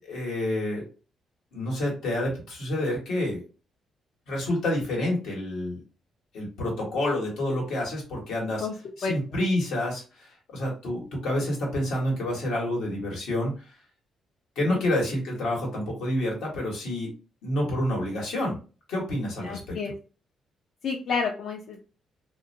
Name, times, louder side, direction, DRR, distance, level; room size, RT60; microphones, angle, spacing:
voice 1, 0.0-0.8 1.5-3.4 4.3-5.8 6.3-8.7 9.0-13.5 14.6-17.1 17.4-18.6 18.9-19.8, left 1 dB, 85° left, -2 dB, 1.3 m, -28 dB
voice 2, 19.4-19.9 20.8-21.8, left 5 dB, 60° left, -1 dB, 0.5 m, -30 dB
2.5 x 2.1 x 2.7 m, 0.34 s
cardioid pair, 90°, 0 cm